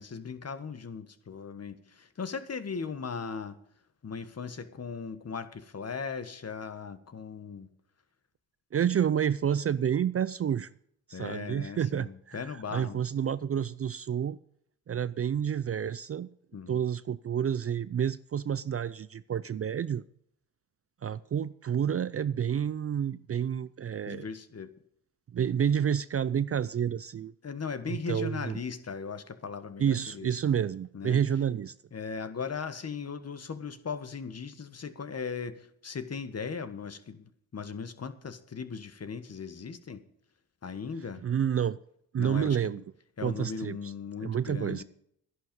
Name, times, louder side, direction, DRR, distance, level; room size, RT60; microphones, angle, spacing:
voice 1, 0.0-3.6 4.0-7.7 11.1-13.0 16.5-16.8 24.1-24.7 27.4-30.3 30.9-31.2 31.9-40.0 40.6-41.2 42.2-42.8 43.2-44.8, left 5 dB, 40° left, 1.4 m, -38 dB
voice 2, 8.7-10.7 11.1-12.4 12.7-14.4 14.9-16.3 16.7-20.0 21.0-24.3 25.3-27.3 27.9-28.6 29.8-31.7 41.2-41.8 42.1-42.8 43.2-43.9 44.2-44.8, right 8 dB, 40° right, 0.4 m, -29 dB
12.0 x 11.0 x 5.3 m
cardioid pair, 85°, 39 cm